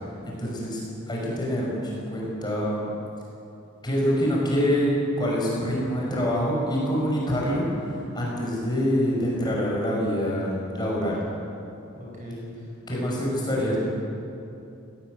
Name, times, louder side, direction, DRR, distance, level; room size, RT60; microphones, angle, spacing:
voice 1, 0.2-2.9 3.8-4.9 5.2-11.2 12.9-13.8, equal, 20° left, -4 dB, 6.5 m, -26 dB
voice 2, 11.9-13.2 13.5-13.8, left 1 dB, 35° right, -3 dB, 6.8 m, -38 dB
19.0 x 19.0 x 9.5 m, 2.8 s
head